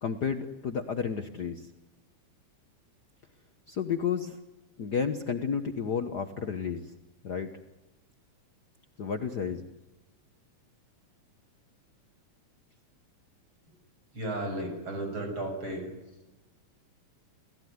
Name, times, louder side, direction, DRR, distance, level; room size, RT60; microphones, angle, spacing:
voice 1, 0.0-1.7 3.7-4.4 4.8-6.9 7.2-7.5 9.0-9.6, left 6 dB, 80° left, 7 dB, 0.9 m, -31 dB
voice 2, 14.1-15.9, right 1 dB, 35° right, 4 dB, 7.8 m, -34 dB
29.0 x 17.0 x 9.5 m, 1.0 s
omnidirectional pair, 3.7 m